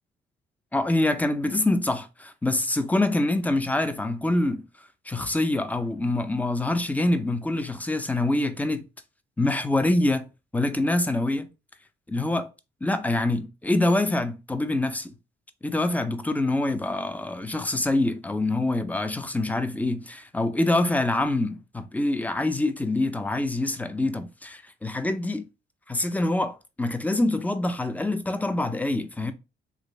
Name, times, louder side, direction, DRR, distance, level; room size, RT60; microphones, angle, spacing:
voice 1, 0.7-4.6 5.1-8.8 9.4-10.2 10.5-11.5 12.1-12.5 12.8-15.1 15.6-25.4 25.9-29.3, left 2 dB, 10° left, 0.5 m, -25 dB
3.2 x 2.6 x 3.0 m
cardioid pair, 90°, 20 cm